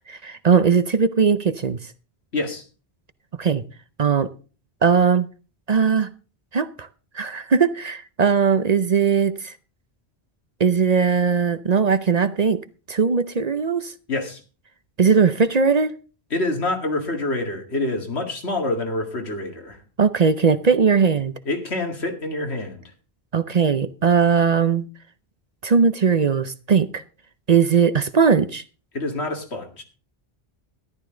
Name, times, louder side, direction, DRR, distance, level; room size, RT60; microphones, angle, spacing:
voice 1, 0.0-1.8 3.3-3.6 4.0-4.3 4.8-5.3 5.7-6.1 6.5-6.9 7.1-9.5 10.6-12.6 12.9-13.9 15.0-15.9 20.0-21.3 23.3-24.9 25.6-27.0 27.5-28.6, right 6 dB, 45° right, 0.7 m, -19 dB
voice 2, 2.3-2.6 14.1-14.4 16.3-19.8 21.5-22.8 28.9-29.8, left 2 dB, 90° left, 2.4 m, -26 dB
13.5 x 11.5 x 3.8 m
omnidirectional pair, 1.1 m